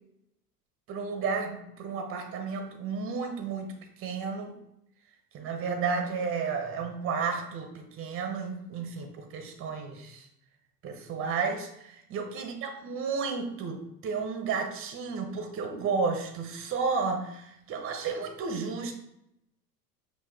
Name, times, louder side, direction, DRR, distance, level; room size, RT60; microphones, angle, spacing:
voice 1, 0.9-3.7 4.0-4.5 5.3-10.3 10.8-18.9, right 5 dB, 25° right, 5 dB, 0.8 m, -32 dB
5.9 x 2.4 x 3.4 m, 0.78 s
figure-of-eight pair, 80°, 48 cm